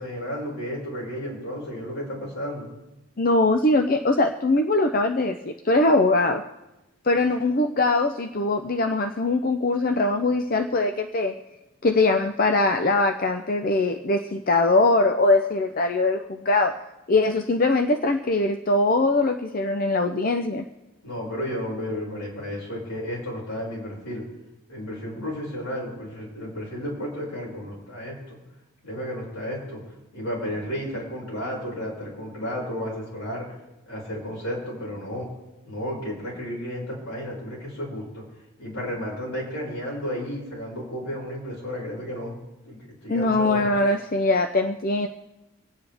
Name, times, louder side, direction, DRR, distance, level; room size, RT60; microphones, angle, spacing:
voice 1, 0.0-2.7 21.0-24.2 24.7-28.4 28.8-29.8 30.1-33.5 33.9-35.3 35.6-38.2 38.6-42.3 42.7-43.6, equal, 80° left, -5 dB, 6.0 m, -32 dB
voice 2, 3.2-6.4 7.0-11.3 11.8-16.8 17.1-20.7 43.1-45.1, left 2 dB, 40° left, 5 dB, 0.6 m, -22 dB
26.0 x 9.2 x 3.5 m, 0.96 s
head